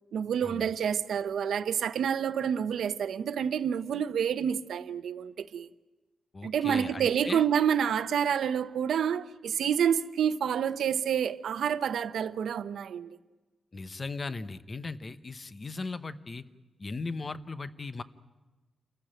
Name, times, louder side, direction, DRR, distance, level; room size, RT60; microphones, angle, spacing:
voice 1, 0.1-5.7 6.4-13.2, right 8 dB, 80° right, 0.9 m, -28 dB
voice 2, 6.3-7.4 13.7-16.4 16.8-18.0, left 3 dB, 30° left, 0.9 m, -37 dB
29.0 x 15.0 x 9.1 m
wide cardioid pair, 165°, 0 cm